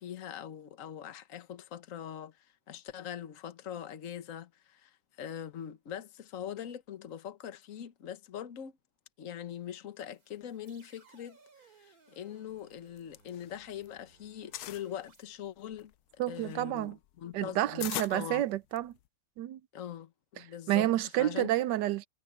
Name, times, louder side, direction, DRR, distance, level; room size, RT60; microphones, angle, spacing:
voice 1, 0.0-8.7 9.2-11.4 11.6-15.9 16.3-18.4 19.7-20.9 21.2-21.5, left 10 dB, 50° left, 1.4 m, -42 dB
sound 1, 10.0-15.2, right 4 dB, 55° right, 3.6 m, -63 dB
sound 2, 12.8-14.0 14.2-14.9 15.5-19.1, left 14 dB, 70° left, 1.1 m, -41 dB
voice 2, 16.2-17.0 17.3-19.0 19.4-19.6 20.4-22.1, right 14 dB, 80° right, 1.3 m, -30 dB
omnidirectional pair, 1.8 m